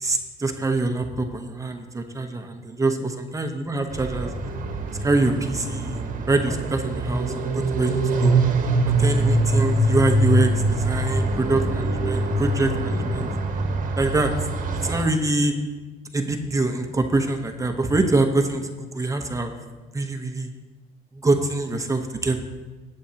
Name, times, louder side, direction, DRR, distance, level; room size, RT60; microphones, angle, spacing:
voice 1, 0.0-4.3 5.0-8.3 9.0-13.3 14.0-14.3 14.8-15.5 16.1-19.5 19.9-20.5 21.2-22.4, right 2 dB, 20° right, 4 dB, 1.0 m, -24 dB
sound 1, 3.9-15.0, right 2 dB, 50° right, 1.3 m, -23 dB
15.5 x 8.6 x 2.9 m, 1.3 s
cardioid pair, 110°, 17 cm